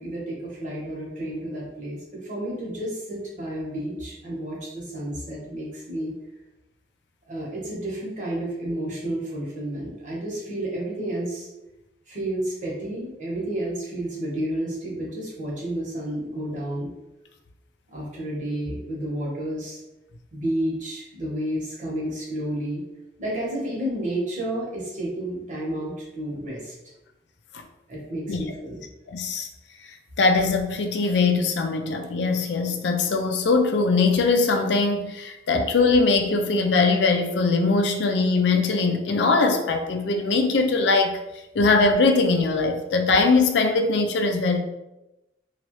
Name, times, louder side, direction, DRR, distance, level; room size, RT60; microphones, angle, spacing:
voice 1, 0.0-6.1 7.3-11.5 12.1-16.9 17.9-19.8 20.3-22.8 23.2-26.7 27.9-28.8, right 1 dB, 45° right, -5 dB, 1.1 m, -31 dB
voice 2, 29.1-29.5 30.2-41.2 41.5-44.6, left 3 dB, 80° left, 4 dB, 0.4 m, -21 dB
3.0 x 2.4 x 3.0 m, 0.95 s
head